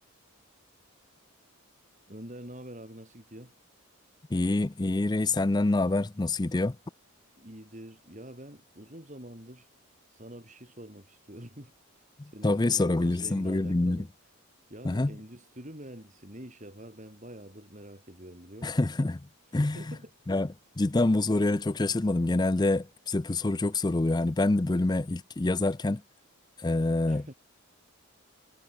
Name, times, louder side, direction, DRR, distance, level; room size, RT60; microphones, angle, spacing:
voice 1, 2.1-3.5 7.4-9.7 10.1-14.1 14.7-18.8 19.5-20.1 21.0-21.1 27.1-27.3, right 1 dB, 35° right, 5.6 m, -46 dB
voice 2, 4.3-6.8 12.2-14.1 14.8-15.1 18.6-19.2 19.5-20.0 20.3-20.5 20.8-26.0 26.6-27.2, left 2 dB, 20° left, 0.4 m, -26 dB
head